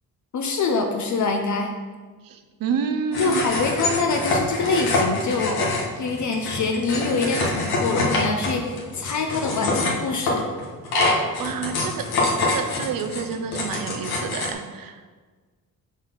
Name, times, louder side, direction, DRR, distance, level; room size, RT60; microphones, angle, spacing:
voice 1, 0.3-1.7 3.2-10.4, left 4 dB, 50° left, 3 dB, 0.7 m, -25 dB
voice 2, 2.2-3.4 11.4-12.1 12.4-15.0, right 6 dB, 65° right, 8 dB, 0.7 m, -29 dB
sound 1, 3.1-14.5, left 2 dB, 90° left, 1.5 m, -25 dB
6.1 x 4.1 x 5.7 m, 1.4 s
cardioid pair, 150°, 37 cm